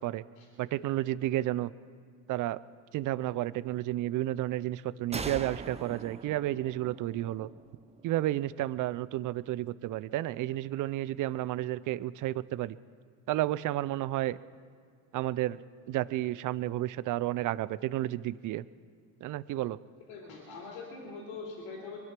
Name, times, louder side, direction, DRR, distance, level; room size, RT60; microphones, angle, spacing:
voice 1, 0.6-1.7 2.3-2.6 2.9-7.5 8.0-12.8 13.3-14.4 15.1-15.6 15.9-18.6 19.2-19.8, right 15 dB, 55° right, 18 dB, 0.6 m, -31 dB
sound 1, 5.1-8.6, right 4 dB, 15° right, 0.9 m, -42 dB
voice 2, 20.1-22.0, left 4 dB, 80° left, -2 dB, 3.3 m, -43 dB
23.0 x 9.5 x 6.0 m, 2.1 s
supercardioid pair, 90°, 37 cm